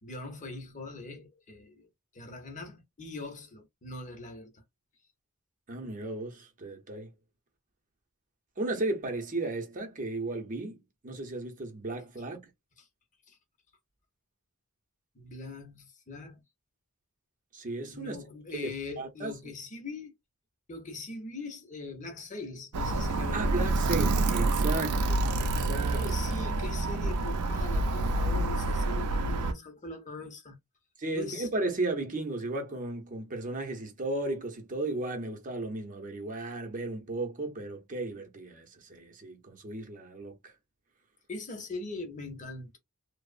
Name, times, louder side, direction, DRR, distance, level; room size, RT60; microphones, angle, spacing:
voice 1, 0.0-4.6 12.8-12.9 13.3-13.4 15.1-16.4 17.9-20.1 20.7-24.2 25.9-30.6 31.1-31.5 41.3-42.8, left 3 dB, 35° left, 0.7 m, -41 dB
voice 2, 5.7-7.1 8.6-10.8 11.0-12.5 17.5-18.2 19.0-19.3 23.3-26.1 31.0-40.5, right 2 dB, 35° right, 0.7 m, -35 dB
Alarm, 22.7-29.5, right 2 dB, 80° right, 0.5 m, -28 dB
2.9 x 2.0 x 2.4 m
head